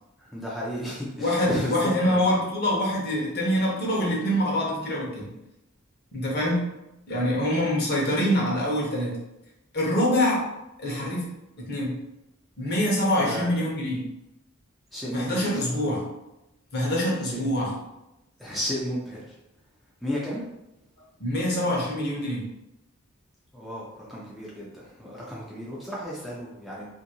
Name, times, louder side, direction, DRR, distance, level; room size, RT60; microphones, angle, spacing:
voice 1, 0.2-2.2 13.2-13.6 14.9-15.7 17.2-17.5 18.4-19.3 20.0-20.4 23.5-26.9, equal, ahead, -6 dB, 0.4 m, -33 dB
voice 2, 1.2-5.3 6.1-6.6 7.1-9.2 9.7-10.5 10.8-11.3 11.6-12.0 12.6-14.0 15.1-16.1 16.7-17.7 21.2-22.5, equal, 50° left, -3 dB, 0.8 m, -25 dB
2.7 x 2.6 x 2.8 m, 0.91 s
head